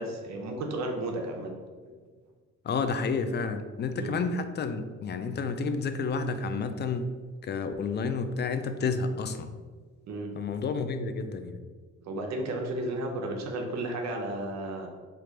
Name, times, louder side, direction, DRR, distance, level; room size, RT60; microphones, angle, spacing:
voice 1, 0.0-1.5 1.8-1.9 4.0-4.2 10.1-10.3 12.0-14.9, right 1 dB, 60° right, 2 dB, 0.8 m, -33 dB
voice 2, 2.6-7.1 7.4-9.5 10.3-11.6, left 4 dB, 35° left, 9 dB, 0.4 m, -30 dB
3.4 x 2.4 x 4.5 m, 1.5 s
cardioid pair, 90°, 30 cm